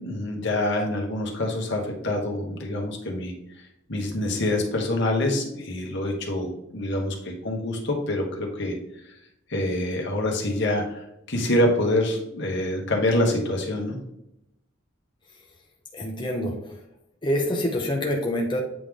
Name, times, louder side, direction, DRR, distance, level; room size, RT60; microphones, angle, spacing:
voice 1, 0.0-8.7 9.0-9.1 9.5-14.0, left 1 dB, 65° left, 1 dB, 1.5 m, -26 dB
voice 2, 15.9-16.8 17.2-18.6, left 1 dB, 25° left, -1 dB, 0.8 m, -26 dB
8.4 x 3.3 x 3.7 m, 0.82 s
head